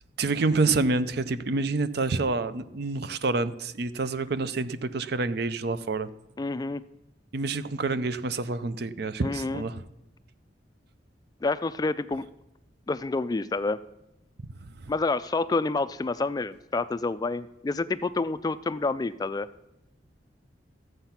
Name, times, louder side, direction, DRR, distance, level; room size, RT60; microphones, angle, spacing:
voice 1, 0.2-6.1 7.3-9.8, right 3 dB, 60° right, 14 dB, 0.6 m, -27 dB
voice 2, 6.4-6.8 9.2-9.6 11.4-12.3 12.9-13.8 14.9-19.5, left 3 dB, 20° left, 14 dB, 0.3 m, -28 dB
13.5 x 7.9 x 5.8 m, 0.88 s
head